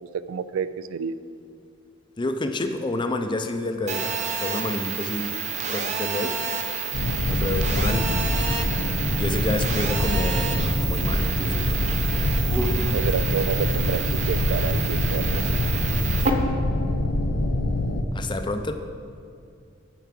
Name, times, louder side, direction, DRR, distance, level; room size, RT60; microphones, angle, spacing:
voice 1, 0.0-1.1 12.9-15.5, right 6 dB, 80° right, 14 dB, 0.3 m, -29 dB
voice 2, 2.2-6.5 7.3-8.2 9.1-11.8 18.1-18.7, left 2 dB, 25° left, 7 dB, 0.5 m, -29 dB
Telephone, 3.9-16.3, right 6 dB, 35° right, 0.7 m, -29 dB
sound 1, 6.9-18.0, left 1 dB, 75° left, 0.6 m, -25 dB
Dog, 7.9-9.5 11.1-12.9, equal, 10° right, 0.9 m, -35 dB
9.2 x 4.8 x 7.4 m, 2.4 s
head